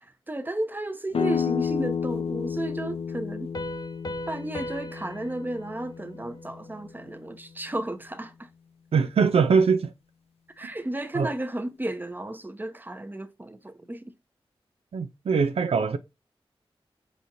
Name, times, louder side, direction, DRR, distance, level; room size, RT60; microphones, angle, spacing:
voice 1, 0.0-3.5 4.3-8.5 10.5-14.1, right 1 dB, 20° right, 0.8 m, -33 dB
sound 1, 1.1-6.7, left 7 dB, 80° left, 0.5 m, -31 dB
Piano, 3.5-7.0, left 1 dB, 40° left, 0.7 m, -39 dB
voice 2, 8.9-9.9 10.6-10.7 11.1-11.3 14.9-16.0, right 5 dB, 90° right, 0.4 m, -22 dB
4.9 x 4.1 x 2.6 m
cardioid pair, 50°, 10 cm